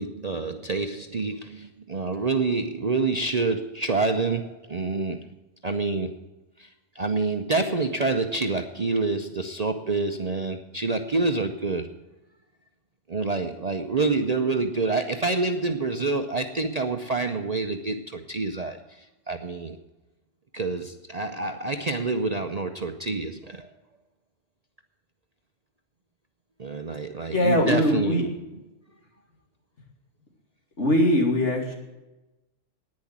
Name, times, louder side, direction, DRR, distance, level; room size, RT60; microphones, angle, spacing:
voice 1, 0.0-6.2 6.6-6.7 6.9-11.9 13.1-19.8 20.5-23.7 26.6-28.2, right 3 dB, 40° right, 5 dB, 0.7 m, -27 dB
voice 2, 27.3-28.2 30.8-31.7, left 1 dB, 65° left, 0 dB, 2.8 m, -21 dB
10.5 x 9.7 x 7.3 m, 1.0 s
omnidirectional pair, 1.3 m